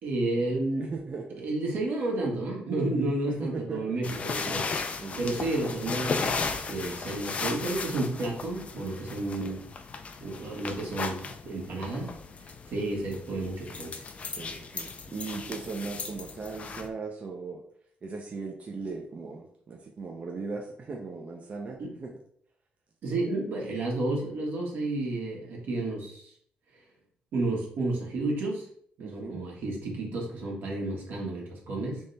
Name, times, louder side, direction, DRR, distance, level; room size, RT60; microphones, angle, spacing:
voice 1, 0.0-0.9 1.4-4.7 5.2-9.6 10.2-12.1 12.4-14.0 21.8-21.9 23.0-26.3 27.3-28.7 29.0-32.0, right 2 dB, 75° right, -2 dB, 1.6 m, -31 dB
voice 2, 0.8-1.4 2.8-4.0 5.0-5.2 9.4-9.6 14.4-17.6 18.0-22.1 29.0-29.5, right 4 dB, 40° right, 1 dB, 0.6 m, -38 dB
sound 1, 4.0-16.9, left 4 dB, 40° left, 0.5 m, -36 dB
3.5 x 3.3 x 4.0 m, 0.63 s
cardioid pair, 120°, 3 cm